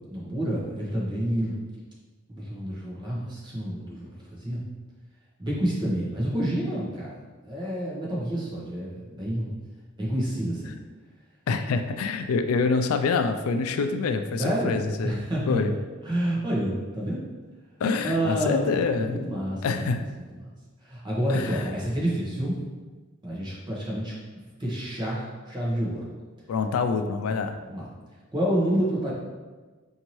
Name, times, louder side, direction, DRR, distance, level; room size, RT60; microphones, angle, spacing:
voice 1, 0.1-1.5 2.3-4.6 5.4-9.5 10.0-10.8 14.4-14.7 15.0-15.8 16.0-17.2 18.0-20.3 20.8-22.6 23.2-24.1 24.6-26.1 27.7-27.8 28.3-29.1, equal, 20° right, -5 dB, 1.0 m, -29 dB
voice 2, 11.5-15.2 15.5-15.7 17.8-19.1 19.6-20.0 21.3-21.7 26.5-27.6, left 4 dB, 85° left, 8 dB, 0.3 m, -26 dB
4.4 x 2.7 x 3.0 m, 1.3 s
head